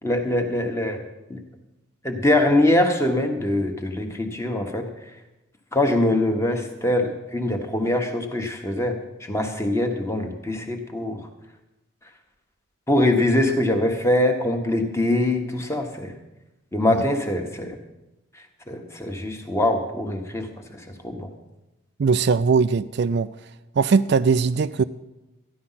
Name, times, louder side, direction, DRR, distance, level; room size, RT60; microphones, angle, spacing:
voice 1, 0.0-1.0 1.3-1.4 2.0-4.9 5.7-11.2 12.9-16.1 16.7-17.8 18.7-21.3, left 1 dB, 15° left, 4 dB, 1.3 m, -23 dB
voice 2, 22.0-23.3 23.8-24.8, right 5 dB, 50° right, 13 dB, 0.3 m, -20 dB
14.0 x 11.0 x 5.7 m, 1.0 s
head